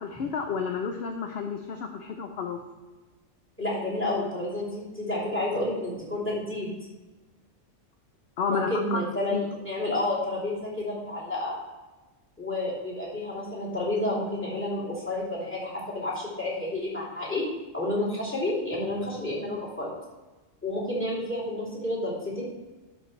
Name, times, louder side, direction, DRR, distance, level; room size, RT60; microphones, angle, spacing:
voice 1, 0.0-2.6 8.4-9.0 9.3-9.5, left 5 dB, 60° left, 4 dB, 0.8 m, -31 dB
voice 2, 3.6-6.7 8.5-11.6 12.4-17.4 17.7-19.9 20.6-22.4, left 1 dB, 10° left, -6 dB, 3.0 m, -30 dB
12.0 x 5.4 x 3.2 m, 1.2 s
omnidirectional pair, 1.3 m